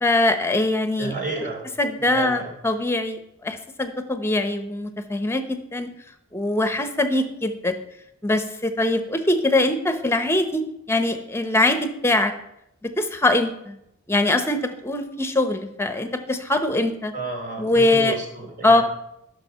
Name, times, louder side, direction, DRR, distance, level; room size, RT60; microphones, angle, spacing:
voice 1, 0.0-1.2 1.8-5.9 6.3-7.7 8.2-10.6 10.9-12.3 12.8-13.8 14.1-17.1 17.6-18.1 18.6-18.8, left 2 dB, 15° left, 8 dB, 1.0 m, -22 dB
voice 2, 1.0-1.7 2.0-2.5 17.1-18.8, right 2 dB, 50° right, -3 dB, 3.1 m, -31 dB
13.0 x 6.6 x 5.7 m, 0.79 s
head